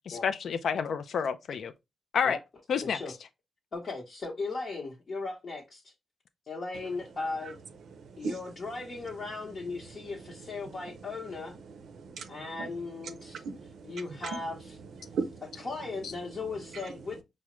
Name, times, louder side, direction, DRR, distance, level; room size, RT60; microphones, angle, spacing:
voice 1, 0.2-1.7 2.1-2.4 2.7-3.0, left 6 dB, 75° left, 0.3 m, -29 dB
voice 2, 2.8-3.1 3.7-5.9 6.5-7.6 8.2-11.5 12.3-13.4 13.8-14.7 15.6-17.2, left 3 dB, 50° left, 0.9 m, -37 dB
voice 3, 8.0-8.3 10.6-10.8 11.8-12.7 13.2-14.2 15.0-15.4 16.7-16.8, right 4 dB, 85° right, 0.4 m, -38 dB
4.6 x 2.1 x 2.9 m
cardioid pair, 85°, 0 cm